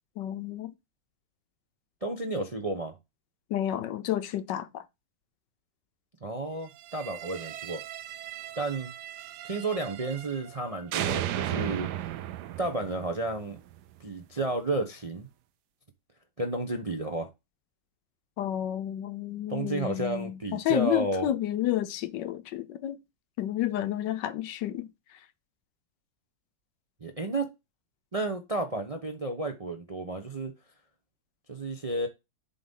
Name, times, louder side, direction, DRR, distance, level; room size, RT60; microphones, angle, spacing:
voice 1, 0.2-0.7 3.5-4.8 18.4-23.0 23.4-24.9, left 12 dB, 75° left, 1.2 m, -30 dB
voice 2, 2.0-2.9 6.2-7.8 8.6-8.9 9.4-12.1 12.6-13.6 14.0-15.3 16.4-17.3 19.5-21.3 27.0-27.5 28.1-30.5 31.5-32.1, right 2 dB, 30° right, 0.6 m, -32 dB
sound 1, 6.8-10.6 10.9-13.9, right 12 dB, 70° right, 1.1 m, -36 dB
7.6 x 3.9 x 5.5 m
omnidirectional pair, 2.0 m